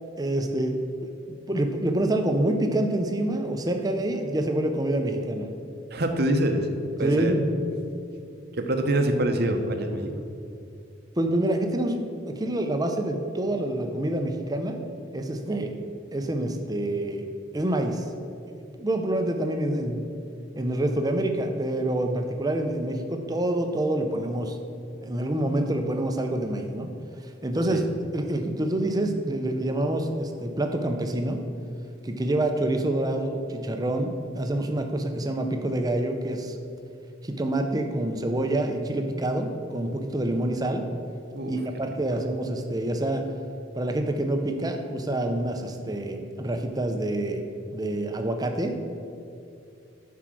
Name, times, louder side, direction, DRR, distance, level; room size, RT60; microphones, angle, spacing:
voice 1, 0.2-5.5 7.0-7.8 11.2-14.8 15.1-15.8 16.1-17.2 17.5-18.0 18.5-20.1 20.5-24.6 25.0-26.9 27.2-27.9 28.1-31.4 32.0-36.6 37.2-40.9 41.5-43.3 43.7-47.5 47.7-48.8, right 1 dB, 20° right, 5 dB, 0.7 m, -27 dB
voice 2, 5.9-6.7 7.0-7.3 8.5-10.1 27.7-27.8 41.3-41.6 42.1-42.2, right 1 dB, 55° right, 5 dB, 0.9 m, -25 dB
10.0 x 4.7 x 6.1 m, 2.5 s
head